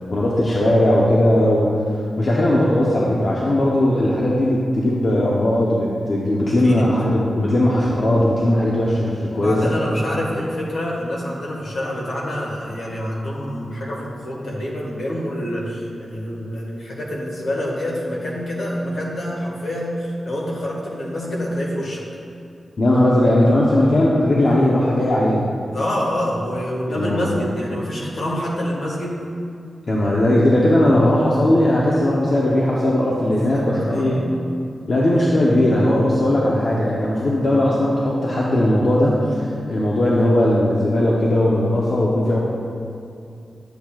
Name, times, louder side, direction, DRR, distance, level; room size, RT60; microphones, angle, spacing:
voice 1, 0.1-1.8 2.2-9.7 22.8-25.4 26.9-27.4 29.9-34.2 34.9-42.5, left 1 dB, 45° left, -5 dB, 0.8 m, -18 dB
voice 2, 9.3-22.0 25.7-29.2 33.5-34.3 34.6-34.9, equal, 65° left, -3 dB, 1.6 m, -27 dB
10.0 x 8.0 x 2.4 m, 2.5 s
wide cardioid pair, 175°, 0 cm